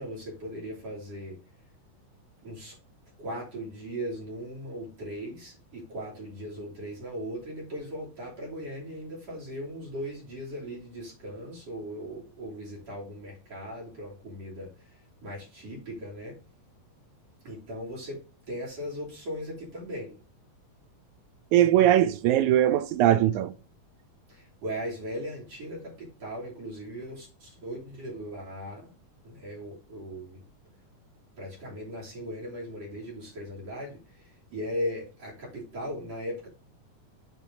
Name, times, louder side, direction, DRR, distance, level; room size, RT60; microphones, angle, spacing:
voice 1, 0.0-1.4 2.4-2.8 3.2-16.4 17.4-20.2 24.3-28.9 29.2-30.4 31.4-36.5, equal, 55° right, 3.9 m, -38 dB
voice 2, 21.5-23.5, right 12 dB, 80° right, 1.8 m, -21 dB
7.5 x 4.7 x 5.0 m
omnidirectional pair, 3.6 m